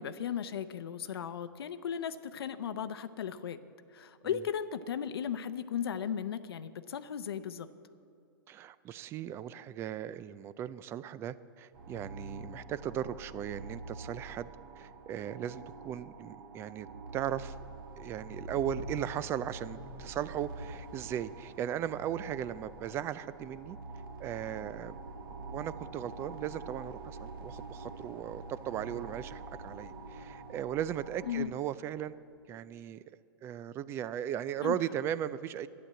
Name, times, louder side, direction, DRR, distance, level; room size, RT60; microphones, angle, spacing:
voice 1, 0.0-3.6 3.9-7.7 31.3-31.5 34.6-34.8, left 8 dB, 85° left, 11 dB, 0.7 m, -36 dB
voice 2, 8.5-14.5 14.8-16.9 17.1-17.5 18.0-23.8 24.2-25.0 25.5-32.2 32.5-33.0 33.4-35.7, right 10 dB, 20° right, 16 dB, 0.3 m, -37 dB
sound 1, 11.7-31.5, right 2 dB, 65° right, 1.2 m, -45 dB
12.0 x 10.0 x 7.6 m, 2.4 s
hypercardioid pair, 150°, 12 cm